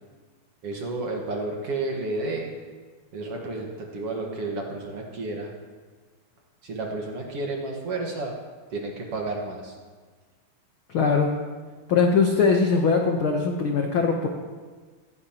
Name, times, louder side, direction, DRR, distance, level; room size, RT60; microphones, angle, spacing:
voice 1, 0.6-2.5 3.1-5.5 6.6-8.3 8.7-9.7, right 2 dB, 55° right, 0 dB, 2.2 m, -31 dB
voice 2, 10.9-11.3 11.9-14.3, left 5 dB, 75° left, 2 dB, 1.2 m, -21 dB
16.0 x 15.5 x 2.9 m, 1.4 s
omnidirectional pair, 3.8 m